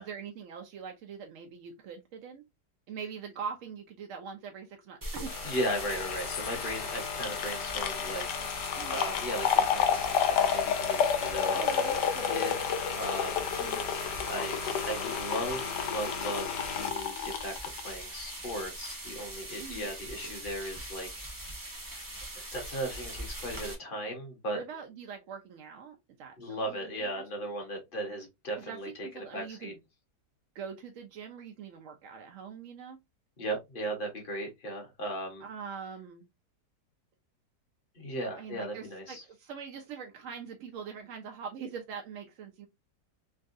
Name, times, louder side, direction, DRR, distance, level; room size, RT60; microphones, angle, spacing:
voice 1, 0.0-2.4 2.9-5.3 8.7-9.0 11.5-12.8 13.6-13.8 19.6-19.9 24.5-27.5 28.6-29.8 30.5-33.0 35.4-36.3 38.4-42.7, right 6 dB, 70° right, 0.7 m, -43 dB
sound 1, 5.0-23.7, right 1 dB, 20° right, 0.5 m, -42 dB
sound 2, 5.3-18.5 18.9-19.0, left 8 dB, 90° left, 1.2 m, -31 dB
voice 2, 5.4-8.5 8.9-11.9 12.3-12.5 12.9-13.9 14.3-21.5 22.5-24.6 26.4-29.7 33.4-35.4 37.9-39.2, equal, 35° left, 1.0 m, -37 dB
3.5 x 2.3 x 2.4 m
omnidirectional pair, 1.8 m